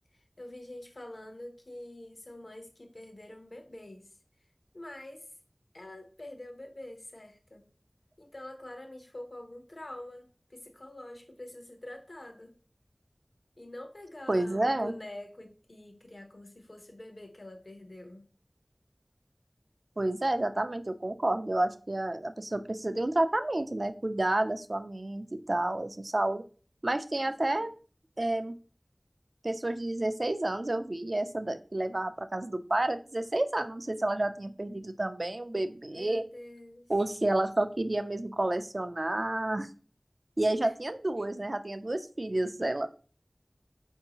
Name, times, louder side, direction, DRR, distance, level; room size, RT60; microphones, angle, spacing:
voice 1, 0.1-4.2 4.7-5.4 5.7-7.6 8.2-12.5 13.6-18.2 27.1-27.7 35.9-36.9 40.6-40.8, left 1 dB, 70° left, 4 dB, 0.7 m, -46 dB
voice 2, 14.3-14.9 20.0-26.5 26.8-27.7 28.2-28.6 29.4-36.3 36.9-39.7 40.4-42.9, right 1 dB, 60° right, 9 dB, 0.3 m, -30 dB
4.6 x 2.7 x 2.8 m, 0.39 s
wide cardioid pair, 40°, 0 cm